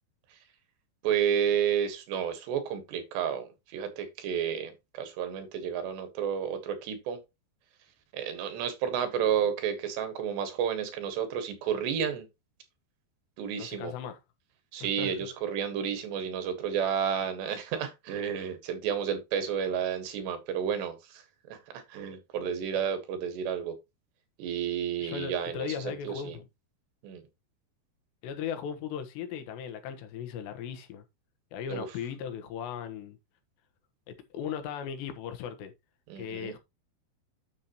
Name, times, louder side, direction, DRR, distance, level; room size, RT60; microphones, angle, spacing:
voice 1, 1.0-7.2 8.1-12.3 13.4-13.9 14.7-23.8 24.4-26.4 27.0-27.2 31.7-31.9 36.1-36.6, right 8 dB, 80° right, 3.7 m, -31 dB
voice 2, 13.6-14.2 14.8-15.2 25.0-26.5 28.2-31.0 31.5-33.2 34.1-35.7 36.2-36.6, left 8 dB, 85° left, 3.4 m, -37 dB
9.5 x 7.0 x 3.0 m
omnidirectional pair, 4.9 m